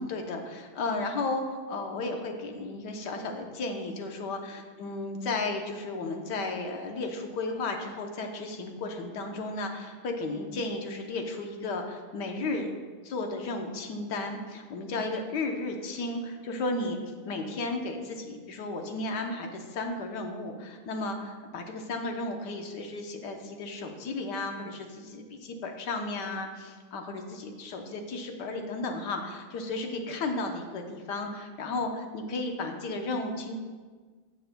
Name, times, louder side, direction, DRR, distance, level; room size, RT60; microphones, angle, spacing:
voice 1, 0.0-12.7 13.0-17.0 17.2-33.5, left 2 dB, 60° left, 3 dB, 1.2 m, -34 dB
16.5 x 6.0 x 2.2 m, 1.5 s
omnidirectional pair, 2.4 m